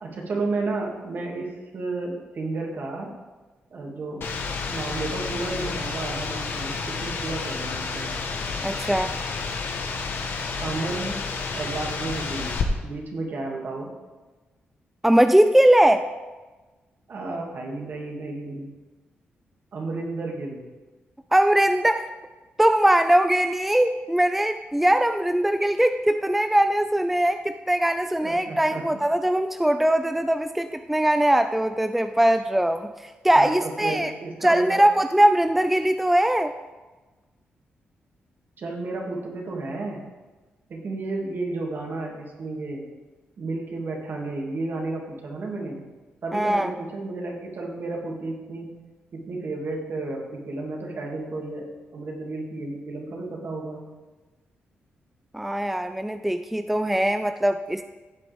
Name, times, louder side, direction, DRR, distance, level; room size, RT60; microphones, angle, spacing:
voice 1, 0.0-3.1 3.7-4.3 4.7-8.1 10.6-11.2 11.5-13.9 17.1-18.7 19.7-20.6 28.2-28.9 33.4-34.8 38.6-40.0 40.7-42.9 43.4-45.8 46.2-48.7 49.1-53.8, right 3 dB, 60° right, 0 dB, 2.3 m, -32 dB
sound 1, 4.2-12.6, left 4 dB, 65° left, 1.3 m, -30 dB
voice 2, 8.6-9.1 15.0-16.1 21.3-22.1 22.6-34.1 34.4-36.5 46.3-46.7 55.3-57.8, right 1 dB, 5° right, 8 dB, 0.4 m, -21 dB
15.5 x 8.0 x 3.5 m, 1.2 s
cardioid pair, 105°, 4 cm